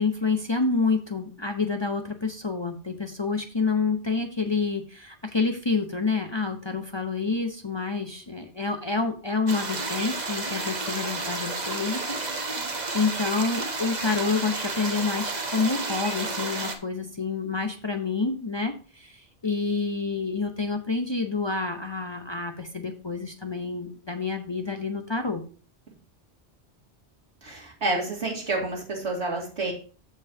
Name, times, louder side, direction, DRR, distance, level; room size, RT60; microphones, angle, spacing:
voice 1, 0.0-12.2 12.9-25.4, left 4 dB, 30° left, 5 dB, 0.6 m, -28 dB
sound 1, 9.5-16.8, right 3 dB, 40° right, 1.1 m, -31 dB
voice 2, 27.4-29.7, right 2 dB, 80° right, -1 dB, 2.6 m, -29 dB
14.0 x 5.3 x 2.8 m, 0.38 s
omnidirectional pair, 1.1 m